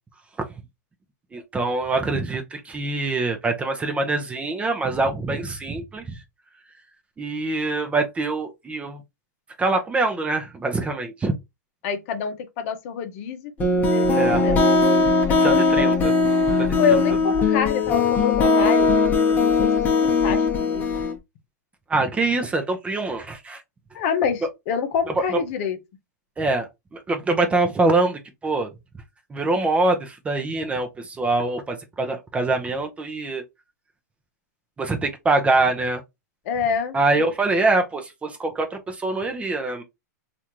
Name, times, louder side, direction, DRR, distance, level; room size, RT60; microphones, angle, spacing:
voice 1, 1.3-6.2 7.2-9.0 9.6-11.3 14.1-14.4 15.4-16.1 16.6-17.0 21.9-23.6 25.2-25.4 26.4-28.7 29.3-33.4 34.8-36.0 36.9-39.8, right 3 dB, 15° right, 0.6 m, -24 dB
voice 2, 11.8-14.6 15.3-16.0 16.8-19.0 19.4-19.7 20.0-21.0 23.9-25.8 36.5-37.3, left 6 dB, 50° left, 0.7 m, -27 dB
sound 1, 13.6-21.1, left 3 dB, 15° left, 0.9 m, -19 dB
3.2 x 2.5 x 2.8 m
hypercardioid pair, 130°, 10 cm